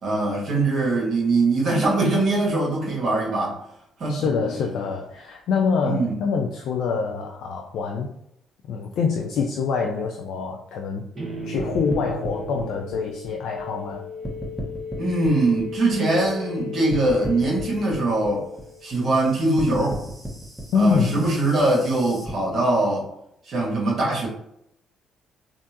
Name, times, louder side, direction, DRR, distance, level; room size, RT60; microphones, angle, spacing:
voice 1, 0.0-3.6 4.0-4.3 5.8-6.1 15.0-18.4 18.8-20.0 20.7-23.1 23.5-24.3, right 2 dB, 55° right, -4 dB, 1.5 m, -22 dB
voice 2, 4.1-8.1 8.7-11.1 11.4-14.1 20.7-21.2, left 5 dB, 70° left, 1 dB, 0.3 m, -25 dB
sound 1, 11.1-19.1, left 3 dB, 35° right, 1.5 m, -36 dB
sound 2, 11.6-13.9 14.2-16.6 16.9-22.3, right 1 dB, 5° right, 1.3 m, -36 dB
3.5 x 2.5 x 2.8 m, 0.78 s
hypercardioid pair, 45°, 0 cm